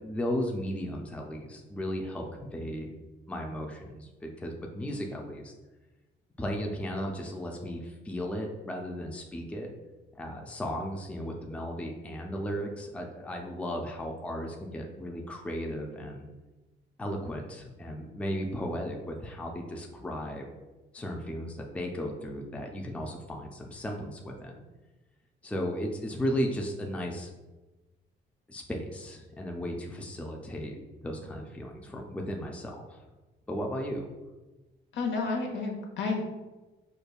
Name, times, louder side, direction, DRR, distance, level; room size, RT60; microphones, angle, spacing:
voice 1, 0.0-2.9 3.3-5.5 6.4-9.7 10.1-16.3 17.0-20.5 20.9-24.6 25.4-27.3 28.5-33.0 33.5-34.1, equal, 5° left, 1 dB, 0.4 m, -35 dB
voice 2, 34.9-36.2, left 4 dB, 70° left, 1 dB, 0.8 m, -30 dB
5.1 x 2.2 x 2.3 m, 1.1 s
cardioid pair, 90°, 20 cm